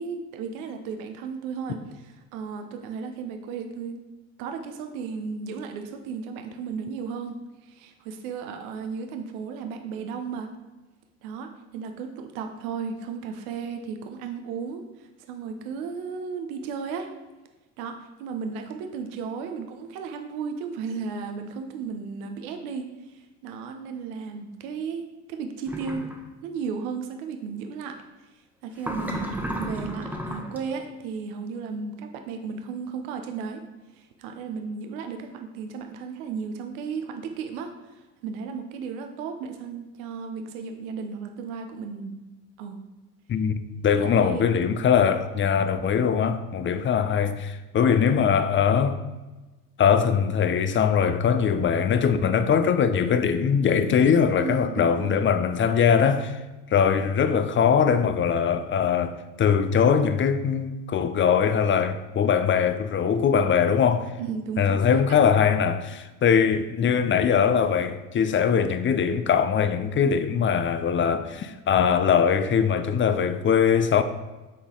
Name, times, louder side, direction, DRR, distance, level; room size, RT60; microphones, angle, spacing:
voice 1, 0.0-4.0 4.4-10.5 11.2-17.1 17.8-26.0 26.4-28.0 28.6-29.3 29.6-33.6 33.9-42.1 42.6-42.8 43.8-44.5 54.4-55.2 64.2-65.2, right 5 dB, 75° right, 0.8 m, -35 dB
sound 1, 25.7-26.2 28.8-30.6, right 1 dB, 5° right, 1.1 m, -32 dB
voice 2, 43.3-49.0 49.8-56.4 56.7-64.1 64.6-74.0, left 7 dB, 30° left, 0.5 m, -22 dB
8.5 x 4.0 x 3.7 m
hypercardioid pair, 75°, 43 cm